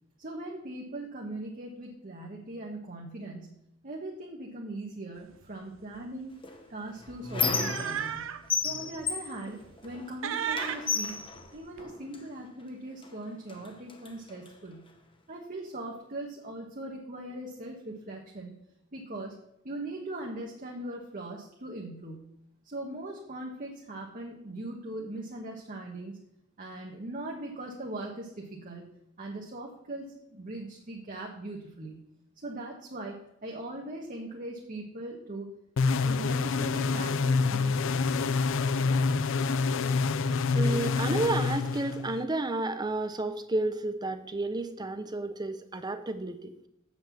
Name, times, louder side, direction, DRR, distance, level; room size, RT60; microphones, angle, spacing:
voice 1, 0.2-3.5 3.8-6.3 6.7-8.3 8.6-11.2 11.5-14.9 15.3-18.5 18.9-19.4 19.6-22.3 22.6-26.2 26.6-28.9 29.2-32.0 32.4-35.5 36.0-38.2, right 1 dB, 40° right, -1 dB, 1.2 m, -40 dB
sound 1, 5.3-5.5 5.8-6.0 7.1-8.5 9.0-9.1 9.6-10.0 10.2-11.8, right 8 dB, 70° right, 0.6 m, -35 dB
Squeak, 6.4-8.2 8.5-10.2 10.5-12.2 13.0-13.1 13.5-14.5, left 5 dB, 25° left, 0.9 m, -33 dB
sound 2, 35.8-42.3, left 4 dB, 65° left, 0.5 m, -27 dB
voice 2, 40.5-46.5, right 2 dB, 20° right, 10 dB, 0.7 m, -31 dB
7.8 x 6.1 x 7.1 m, 0.77 s
head